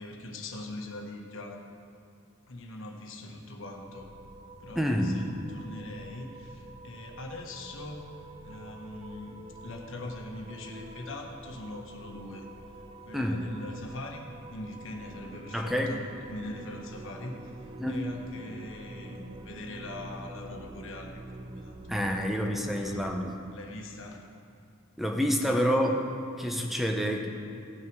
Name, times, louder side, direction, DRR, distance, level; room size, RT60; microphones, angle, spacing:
voice 1, 0.0-1.6 2.5-4.1 4.6-8.1 8.4-12.5 13.0-16.0 16.3-17.5 17.9-21.2 21.5-22.2 22.6-23.1 23.5-24.3 25.2-25.8, left 2 dB, 60° left, 2 dB, 1.2 m, -42 dB
sound 1, 3.7-23.3, right 1 dB, 25° right, 0.5 m, -46 dB
voice 2, 4.8-5.2 13.1-13.4 15.5-16.0 17.8-18.0 21.9-23.3 25.0-25.9 26.4-27.3, equal, ahead, 2 dB, 0.8 m, -28 dB
17.0 x 6.0 x 4.7 m, 2.4 s
head